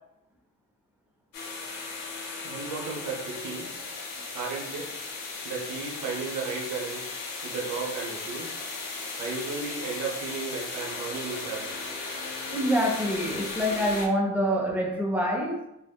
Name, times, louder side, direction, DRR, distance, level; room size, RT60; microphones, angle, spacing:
sound 1, 1.3-14.1, left 3 dB, 80° left, 0.7 m, -36 dB
voice 1, 2.4-3.7 4.3-4.9 5.4-7.0 7.4-8.6 8.8-8.9 9.2-11.7, right 4 dB, 65° right, -1 dB, 0.7 m, -34 dB
voice 2, 12.5-15.7, equal, 5° right, -1 dB, 0.5 m, -26 dB
3.4 x 2.0 x 2.2 m, 0.84 s
cardioid pair, 125°, 33 cm